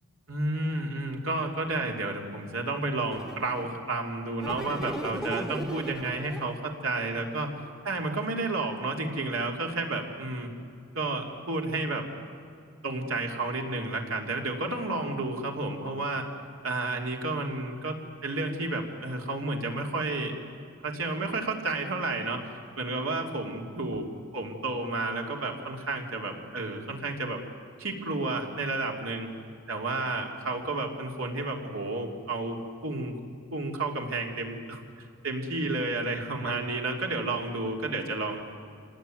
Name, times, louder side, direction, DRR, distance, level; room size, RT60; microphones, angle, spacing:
voice 1, 0.3-7.5 7.8-10.5 10.9-12.0 12.8-16.3 16.6-20.3 20.8-24.1 24.3-27.4 27.8-29.3 29.7-32.6 32.8-33.2 33.5-34.8 35.2-38.5, right 2 dB, 85° right, 1 dB, 3.1 m, -31 dB
sound 1, 3.1-3.8 4.4-6.7, right 1 dB, 5° right, 0.9 m, -37 dB
26.0 x 19.0 x 9.3 m, 2.4 s
head